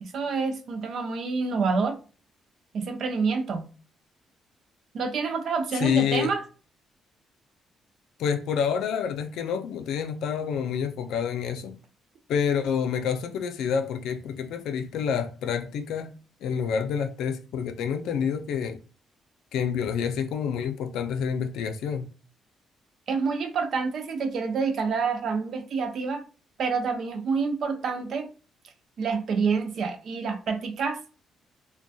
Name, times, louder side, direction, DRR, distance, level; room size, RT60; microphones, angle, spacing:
voice 1, 0.0-2.0 2.7-3.7 4.9-6.4 23.1-26.2 26.6-28.3 29.0-31.0, right 5 dB, 55° right, 0.5 m, -27 dB
voice 2, 5.8-6.3 8.2-11.7 12.3-16.1 16.4-18.8 19.5-22.1, left 7 dB, 85° left, 0.4 m, -28 dB
2.2 x 2.2 x 2.6 m
cardioid pair, 135°, 0 cm